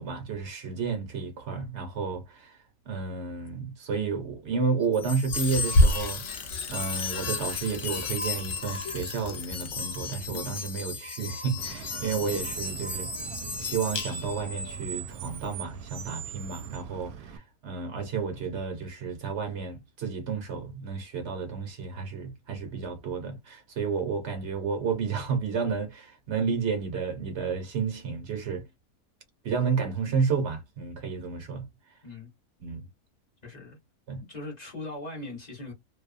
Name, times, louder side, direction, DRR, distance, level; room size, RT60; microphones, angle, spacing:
voice 1, 0.0-2.6 2.8-13.1 13.6-28.6 29.4-31.7 32.6-32.9 34.1-34.2, right 5 dB, 50° right, 1.1 m, -31 dB
sound 1, 4.9-14.5, left 2 dB, 60° left, 0.9 m, -30 dB
Bicycle, 5.3-10.8, left 6 dB, 85° left, 0.4 m, -43 dB
Screech, 11.6-17.4, right 6 dB, 80° right, 1.1 m, -39 dB
voice 2, 33.4-33.8 34.2-35.7, left 2 dB, 30° left, 1.2 m, -40 dB
2.7 x 2.3 x 2.5 m
omnidirectional pair, 1.7 m